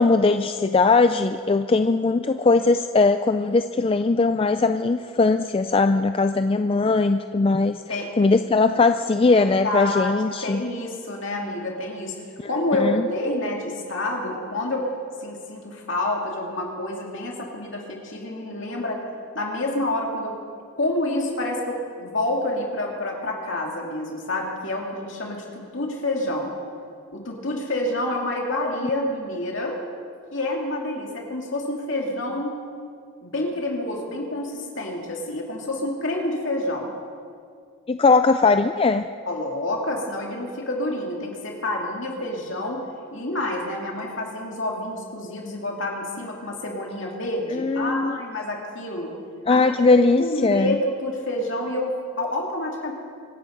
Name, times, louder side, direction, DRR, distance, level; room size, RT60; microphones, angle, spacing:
voice 1, 0.0-7.8 8.2-10.6 12.4-13.1 37.9-39.0 47.5-48.2 49.5-50.8, left 3 dB, 25° left, 9 dB, 0.3 m, -20 dB
voice 2, 9.3-10.1 10.4-14.9 15.2-19.0 19.3-20.4 20.7-26.5 27.1-29.8 30.3-32.6 33.2-36.9 39.3-42.8 43.1-49.1 49.5-49.9 50.2-52.9, left 1 dB, 60° left, 0 dB, 2.8 m, -28 dB
24.5 x 10.5 x 5.3 m, 2.2 s
head